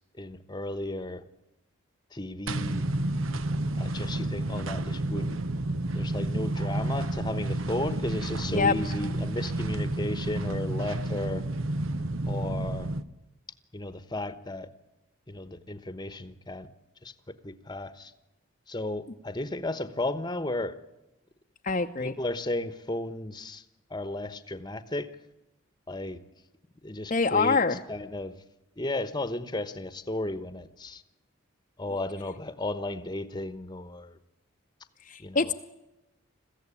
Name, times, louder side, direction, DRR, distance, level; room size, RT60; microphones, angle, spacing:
voice 1, 0.2-1.2 2.1-2.8 3.8-5.4 5.9-11.4 12.3-12.9 13.7-14.7 15.3-16.7 17.0-17.1 17.4-18.1 18.7-20.7 22.0-23.6 23.9-25.1 25.9-26.2 26.8-28.3 28.8-31.0 31.8-34.2 35.2-35.5, left 1 dB, 20° left, 13 dB, 1.0 m, -34 dB
sound 1, 2.5-13.0, right 1 dB, 80° right, 0.9 m, -30 dB
voice 2, 21.6-22.1 27.1-27.8 35.1-35.5, left 4 dB, 40° left, 3 dB, 0.7 m, -25 dB
22.0 x 15.5 x 10.0 m, 0.97 s
head